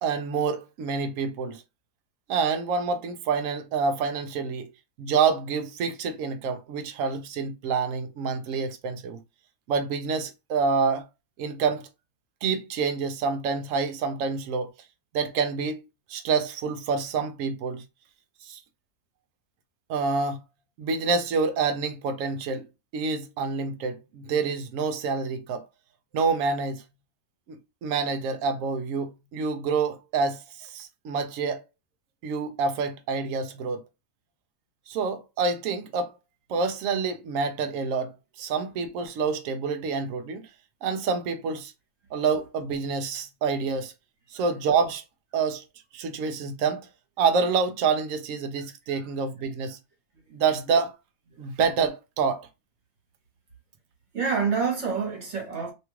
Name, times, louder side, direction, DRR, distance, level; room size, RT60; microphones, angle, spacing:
voice 1, 0.0-1.6 2.3-4.7 5.0-9.2 9.7-11.0 11.4-11.9 12.4-14.7 15.1-15.8 16.1-17.8 18.4-18.6 19.9-20.4 20.8-22.7 22.9-25.7 26.1-26.8 27.5-31.6 32.2-33.8 34.9-36.1 36.5-38.1 38.4-40.5 40.8-41.7 42.1-43.9 44.3-45.0 45.3-45.6 45.9-46.9 47.2-49.8 50.3-50.9 51.4-52.5, right 5 dB, 70° right, 0.8 m, -27 dB
voice 2, 54.1-55.7, right 5 dB, 50° right, 1.1 m, -28 dB
2.9 x 2.3 x 3.0 m
omnidirectional pair, 1.7 m